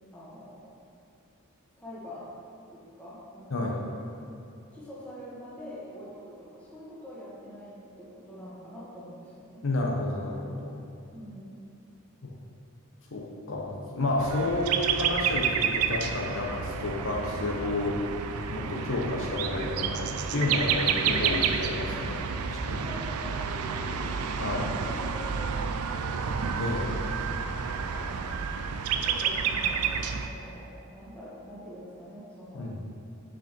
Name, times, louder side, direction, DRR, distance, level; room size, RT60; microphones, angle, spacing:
voice 1, 0.1-0.7 1.8-2.3 2.7-3.7 4.7-9.6 11.1-11.6 22.8-26.4 27.9-28.4 28.9-29.9 30.2-32.8, equal, 5° left, -8 dB, 1.5 m, -44 dB
voice 2, 9.6-10.8 12.2-12.3 13.1-17.9 18.5-22.8 24.4-24.7 26.6-26.9 32.5-32.8, left 2 dB, 65° left, -2 dB, 0.8 m, -30 dB
sound 1, 14.2-30.3, right 6 dB, 90° right, 0.4 m, -30 dB
5.5 x 5.2 x 5.2 m, 2.6 s
head